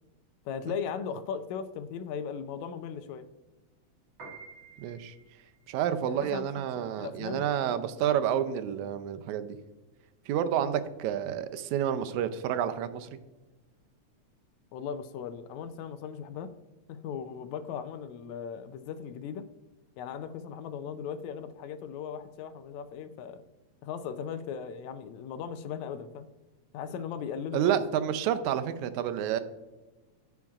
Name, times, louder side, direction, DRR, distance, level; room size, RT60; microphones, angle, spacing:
voice 1, 0.4-3.3 6.0-6.5 6.8-7.7 14.7-16.5 16.9-19.5 20.0-23.4 23.8-26.3 26.7-27.8, left 7 dB, 80° left, 11 dB, 1.8 m, -38 dB
Piano, 4.0-14.4, right 4 dB, 60° right, 3.3 m, -54 dB
voice 2, 4.8-5.1 5.7-9.6 10.3-13.1 27.5-29.4, right 9 dB, 85° right, 10 dB, 2.0 m, -29 dB
15.0 x 5.9 x 2.4 m, 1.1 s
omnidirectional pair, 3.3 m